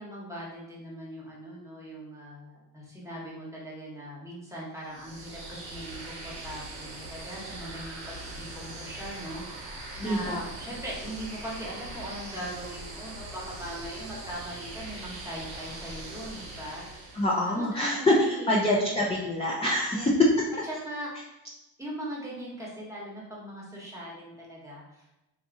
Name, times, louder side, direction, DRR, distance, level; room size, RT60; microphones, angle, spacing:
voice 1, 0.0-9.7 10.0-16.8 17.6-18.7 19.9-20.1 20.6-21.1 21.8-25.3, equal, 5° right, -5 dB, 1.1 m, -40 dB
sound 1, 4.8-17.6, right 2 dB, 75° right, 0.7 m, -41 dB
voice 2, 10.0-10.4 17.1-18.1 18.5-20.1, left 1 dB, 15° left, -4 dB, 0.5 m, -26 dB
2.6 x 2.4 x 2.5 m, 0.94 s
supercardioid pair, 55°, 44 cm